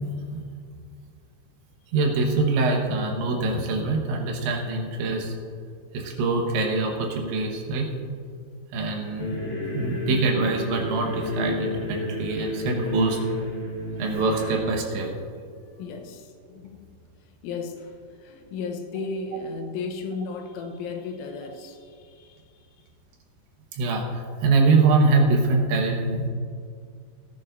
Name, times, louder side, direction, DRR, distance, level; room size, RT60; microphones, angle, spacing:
voice 1, 0.0-0.4 1.9-5.3 5.9-7.9 8.7-9.4 9.7-13.2 14.0-15.1 23.7-26.3, right 3 dB, 75° right, 1 dB, 3.4 m, -24 dB
sound 1, 9.2-14.6, left 1 dB, 15° left, 2.1 m, -31 dB
voice 2, 15.6-16.9 17.4-22.9, left 4 dB, 85° left, 4 dB, 3.4 m, -35 dB
17.0 x 11.0 x 2.6 m, 2.2 s
omnidirectional pair, 5.6 m